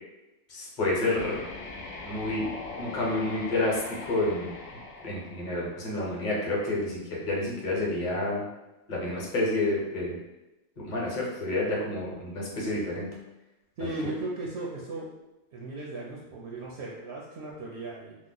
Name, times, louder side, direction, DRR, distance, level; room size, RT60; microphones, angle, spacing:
voice 1, 0.5-1.4 2.0-2.5 2.8-4.5 5.0-8.5 8.9-10.2 10.8-13.1 13.8-13.9, left 2 dB, 40° left, -4 dB, 0.9 m, -29 dB
sound 1, 1.1-6.1, left 3 dB, 80° left, 1.0 m, -41 dB
voice 2, 13.8-15.1 15.5-18.2, right 2 dB, 65° right, -3 dB, 0.7 m, -36 dB
2.9 x 2.0 x 3.8 m, 1.0 s
omnidirectional pair, 1.3 m